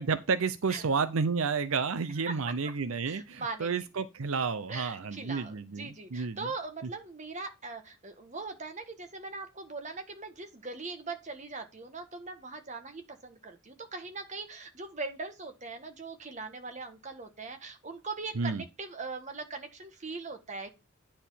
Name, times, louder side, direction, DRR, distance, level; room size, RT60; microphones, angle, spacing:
voice 1, 0.0-6.5 6.8-6.9 18.3-18.6, right 5 dB, 85° right, 0.6 m, -31 dB
voice 2, 3.1-3.7 4.7-20.7, right 3 dB, 35° right, 1.6 m, -40 dB
10.0 x 4.4 x 5.7 m
head